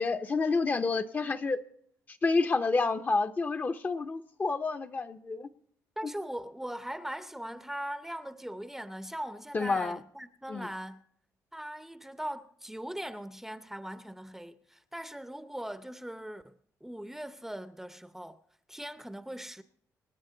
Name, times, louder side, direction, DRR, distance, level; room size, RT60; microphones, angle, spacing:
voice 1, 0.0-1.6 2.1-5.5 6.0-6.1 9.5-10.0 10.5-10.7, left 3 dB, 30° left, 0.7 m, -29 dB
voice 2, 6.0-11.0 11.5-16.5 16.8-18.4 18.7-19.6, right 1 dB, 5° right, 0.7 m, -40 dB
26.5 x 9.9 x 3.9 m
cardioid pair, 130°, 6 cm